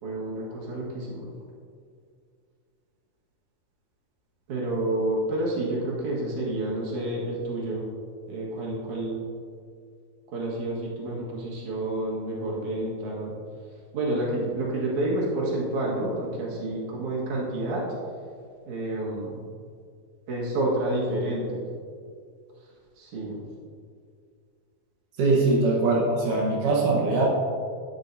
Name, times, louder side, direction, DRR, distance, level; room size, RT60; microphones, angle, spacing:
voice 1, 0.0-1.3 4.5-7.9 8.3-9.2 10.3-13.3 13.9-17.8 18.7-19.4 20.3-21.6 23.0-23.4 25.5-25.6, right 1 dB, 60° right, -5 dB, 2.1 m, -29 dB
voice 2, 25.2-27.2, right 3 dB, 85° right, -4 dB, 1.8 m, -22 dB
12.0 x 7.3 x 2.7 m, 2.2 s
omnidirectional pair, 5.6 m